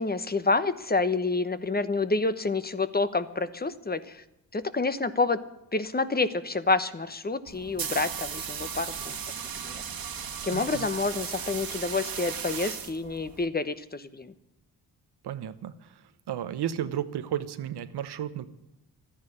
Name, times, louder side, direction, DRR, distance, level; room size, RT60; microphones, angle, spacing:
voice 1, 0.0-4.2 4.5-5.4 5.7-9.2 9.6-9.8 10.4-14.3, left 3 dB, 25° left, 13 dB, 1.0 m, -28 dB
sound 1, 7.5-13.5, right 7 dB, 65° right, 1.7 m, -36 dB
voice 2, 10.5-10.9 15.2-15.7 16.3-18.5, right 10 dB, 90° right, 12 dB, 1.0 m, -33 dB
13.5 x 10.5 x 10.0 m, 0.86 s
cardioid pair, 85°, 39 cm